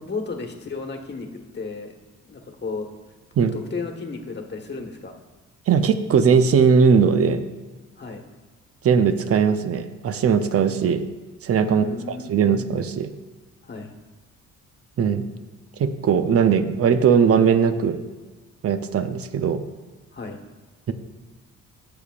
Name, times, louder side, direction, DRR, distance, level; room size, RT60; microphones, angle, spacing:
voice 1, 0.0-1.9 2.2-2.9 3.5-5.1 8.0-8.2 11.6-12.4 13.6-13.9 20.1-20.4, left 4 dB, 35° left, 2 dB, 1.4 m, -33 dB
voice 2, 5.7-7.4 8.8-11.0 11.4-13.1 15.0-15.3 15.8-18.0 18.6-19.6, right 6 dB, 50° right, 10 dB, 0.8 m, -19 dB
16.5 x 7.0 x 2.5 m, 1.3 s
cardioid pair, 90°, 30 cm